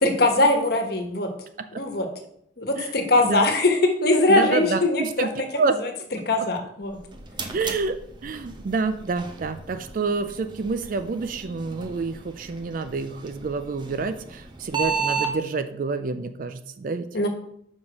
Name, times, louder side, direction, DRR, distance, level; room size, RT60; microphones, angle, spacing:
voice 1, 0.0-1.3 1.8-2.1 2.6-5.0 6.3-7.0 17.1-17.3, left 2 dB, 55° left, 5 dB, 1.3 m, -21 dB
voice 2, 4.3-5.7 6.4-6.5 7.5-8.0 8.2-17.1, right 4 dB, 45° right, 9 dB, 0.4 m, -28 dB
sound 1, 6.8-15.3, right 5 dB, 25° right, 0.8 m, -34 dB
5.5 x 4.9 x 6.3 m, 0.71 s
head